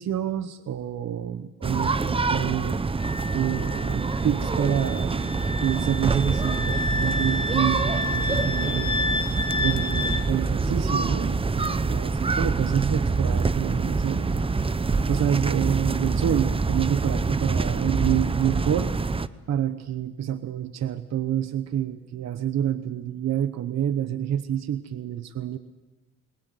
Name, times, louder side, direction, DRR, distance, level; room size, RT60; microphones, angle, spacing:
voice 1, 0.0-2.8 3.3-9.0 9.6-14.6 15.1-18.9 19.5-25.6, right 10 dB, 60° right, 11 dB, 1.0 m, -28 dB
sound 1, 1.6-19.3, right 4 dB, 20° right, 0.7 m, -26 dB
Wind instrument woodwind instrument, 3.0-10.2, left 2 dB, 15° left, 1.9 m, -31 dB
21.5 x 20.5 x 7.8 m, 1.1 s
cardioid pair, 90°, 30 cm